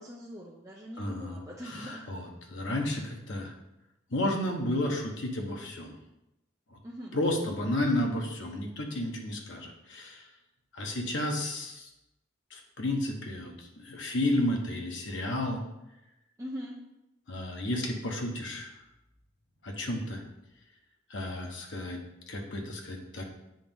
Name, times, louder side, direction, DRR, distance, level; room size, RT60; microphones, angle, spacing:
voice 1, 0.0-2.1 6.8-7.2 16.4-16.8, equal, 15° right, -4 dB, 0.6 m, -42 dB
voice 2, 1.0-1.4 1.6-3.5 4.1-6.0 6.7-6.8 7.1-10.3 10.7-11.9 12.5-15.6 17.3-18.7 19.6-20.2 21.1-22.0 22.3-23.3, left 1 dB, 85° left, 2 dB, 1.1 m, -32 dB
7.8 x 3.0 x 5.3 m, 0.89 s
head